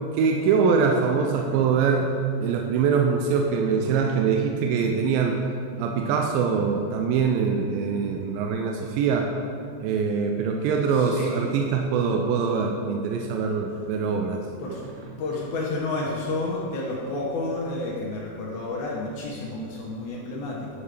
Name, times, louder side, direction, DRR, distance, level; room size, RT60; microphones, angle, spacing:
voice 1, 0.1-2.1 2.4-5.4 5.8-9.3 9.8-14.4, right 5 dB, 80° right, 2 dB, 2.1 m, -23 dB
voice 2, 10.9-11.4 14.6-14.8 15.2-20.8, left 2 dB, 75° left, -4 dB, 1.8 m, -30 dB
9.9 x 5.0 x 3.3 m, 2.4 s
omnidirectional pair, 4.4 m